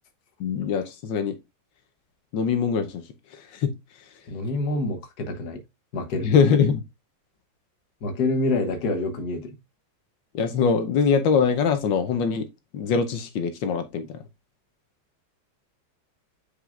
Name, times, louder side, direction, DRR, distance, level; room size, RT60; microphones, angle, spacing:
voice 1, 0.4-1.4 2.3-3.0 3.3-3.7 6.2-6.8 10.3-12.5 12.7-14.2, left 6 dB, 85° left, 1.5 m, -23 dB
voice 2, 4.3-5.6 5.9-6.3 8.0-9.6, left 2 dB, 60° left, 1.6 m, -27 dB
8.1 x 5.0 x 2.5 m
omnidirectional pair, 2.0 m